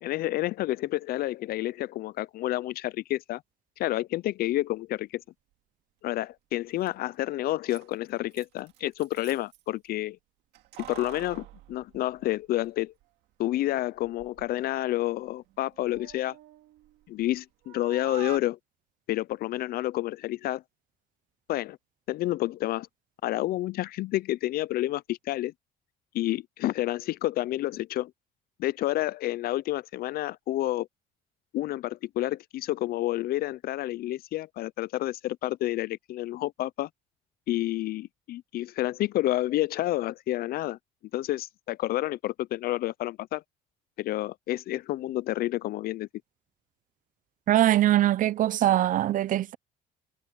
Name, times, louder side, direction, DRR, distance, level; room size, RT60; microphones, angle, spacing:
voice 1, 0.0-3.4 3.8-5.2 6.0-10.2 10.8-12.9 13.4-16.4 17.1-18.6 19.1-20.6 21.5-21.8 22.1-22.9 23.2-25.5 26.1-28.1 28.6-30.9 31.5-36.9 37.5-40.8 41.1-43.4 44.0-46.1, left 15 dB, 65° left, 0.4 m, -29 dB
Keys jangling, 6.5-6.6 6.8-6.9 7.5-9.6 10.5-12.7 13.0-13.1 14.0-14.5 14.9-17.4 17.6-18.4, right 15 dB, 90° right, 2.1 m, -47 dB
voice 2, 47.5-49.6, right 13 dB, 50° right, 0.6 m, -22 dB
cardioid pair, 110°, 17 cm